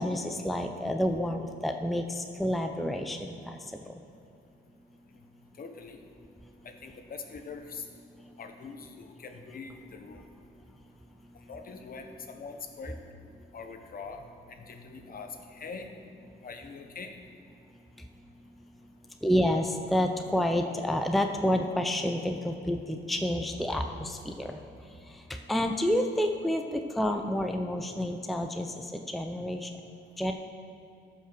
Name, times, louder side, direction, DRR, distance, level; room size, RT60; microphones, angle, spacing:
voice 1, 0.0-3.6 3.9-4.0 19.2-24.6 25.1-29.7 30.2-30.3, left 1 dB, ahead, 5 dB, 0.6 m, -29 dB
voice 2, 5.6-6.0 6.6-7.8 8.4-10.2 11.5-13.0 13.5-14.2 14.6-15.9 16.4-17.1, left 5 dB, 45° left, 5 dB, 1.2 m, -43 dB
13.5 x 5.7 x 6.1 m, 2.7 s
cardioid pair, 90°, 20 cm